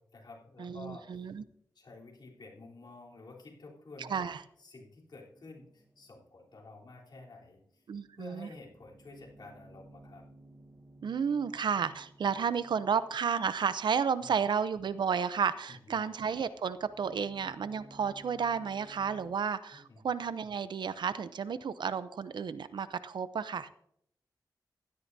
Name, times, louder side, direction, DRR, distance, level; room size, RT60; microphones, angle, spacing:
voice 1, 0.0-1.3 1.8-4.3 4.6-7.8 8.2-10.2 14.2-14.4 15.7-16.0 19.7-20.0, left 2 dB, 65° left, -3 dB, 3.5 m, -51 dB
voice 2, 0.6-1.4 4.0-4.4 7.9-8.5 11.0-23.7, right 6 dB, 85° right, 14 dB, 0.6 m, -32 dB
sound 1, 5.3-7.2 7.7-7.8 8.1-15.9 16.2-19.4, right 1 dB, 15° right, 1.2 m, -58 dB
16.0 x 12.5 x 2.7 m, 0.72 s
wide cardioid pair, 90°, 8 cm